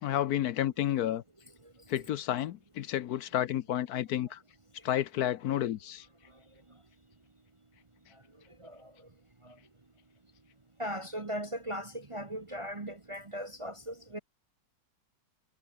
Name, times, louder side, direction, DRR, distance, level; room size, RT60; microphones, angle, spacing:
voice 1, 0.0-1.2 1.9-4.4 4.8-6.1, left 12 dB, 70° left, 1.2 m, -31 dB
voice 2, 8.6-8.9 9.4-9.5 10.8-14.2, equal, 25° right, 0.9 m, -38 dB
omnidirectional pair, 1.8 m